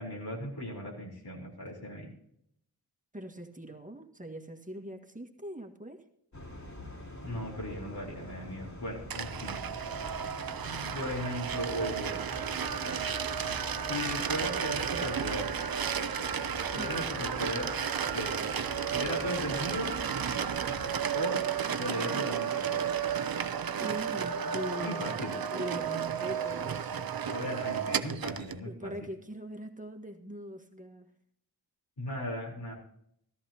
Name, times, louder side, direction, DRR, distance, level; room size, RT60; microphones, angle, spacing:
voice 1, 0.0-2.1 7.2-9.6 10.6-12.1 13.9-15.5 16.7-17.7 18.0-18.4 18.9-19.9 21.1-21.4 21.7-22.9 24.8-25.3 27.3-28.9 32.0-32.7, left 1 dB, 80° left, -2 dB, 3.9 m, -37 dB
voice 2, 3.1-6.0 16.8-17.0 23.8-25.0 25.5-27.0 28.6-31.1, right 1 dB, 20° right, 3 dB, 1.7 m, -41 dB
sound 1, 6.3-21.0, equal, 50° left, 3.3 m, -45 dB
sound 2, 9.1-28.6, right 7 dB, 65° right, 0.6 m, -33 dB
14.0 x 14.0 x 2.8 m, 0.72 s
wide cardioid pair, 65°, 38 cm